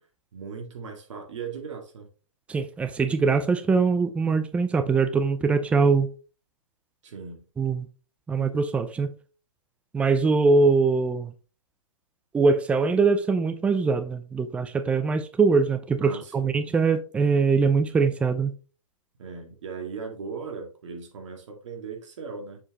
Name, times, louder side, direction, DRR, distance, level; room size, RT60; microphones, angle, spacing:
voice 1, 0.3-2.1 7.0-7.5 16.0-16.5 19.2-22.6, right 5 dB, 60° right, 2.2 m, -38 dB
voice 2, 2.5-6.1 7.6-7.9 8.3-9.1 9.9-11.3 12.3-18.5, right 4 dB, 5° right, 0.5 m, -22 dB
6.9 x 4.8 x 3.1 m
hypercardioid pair, 130°, 17 cm